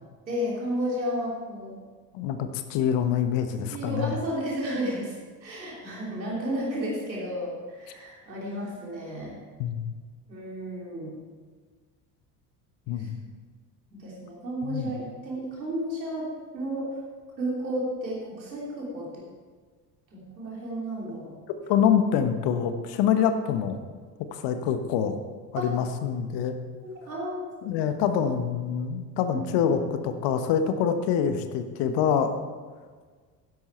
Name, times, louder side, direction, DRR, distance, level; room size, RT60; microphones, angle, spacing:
voice 1, 0.3-1.8 3.7-5.1 5.4-9.4 10.3-11.2 13.0-13.1 13.9-16.9 17.4-19.2 20.1-21.3 25.6-25.7 26.8-27.5 29.3-29.4 29.7-29.8, equal, 85° right, -4 dB, 3.3 m, -32 dB
voice 2, 2.1-4.1 9.6-9.8 12.9-13.2 14.6-14.9 21.7-23.8 24.3-25.2 25.5-26.5 27.6-32.4, left 8 dB, 55° left, 8 dB, 1.3 m, -25 dB
12.5 x 10.5 x 4.4 m, 1.5 s
figure-of-eight pair, 60°, 50 cm